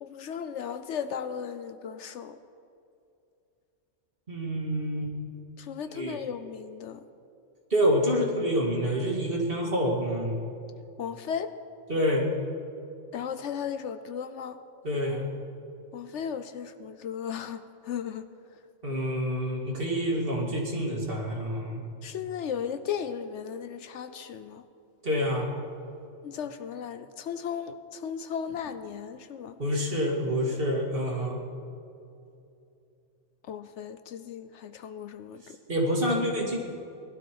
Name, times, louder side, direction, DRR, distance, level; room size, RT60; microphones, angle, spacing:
voice 1, 0.0-2.4 5.6-7.0 11.0-11.5 13.1-14.6 15.9-18.3 22.0-24.6 26.2-29.5 33.4-35.6, left 7 dB, 70° left, 11 dB, 0.9 m, -36 dB
voice 2, 4.3-5.1 5.8-6.2 7.7-10.4 11.9-12.3 14.8-15.3 18.8-21.8 25.0-25.5 29.6-31.4 35.7-36.6, equal, 45° right, -1 dB, 2.4 m, -27 dB
20.0 x 12.0 x 4.6 m, 2.6 s
omnidirectional pair, 1.3 m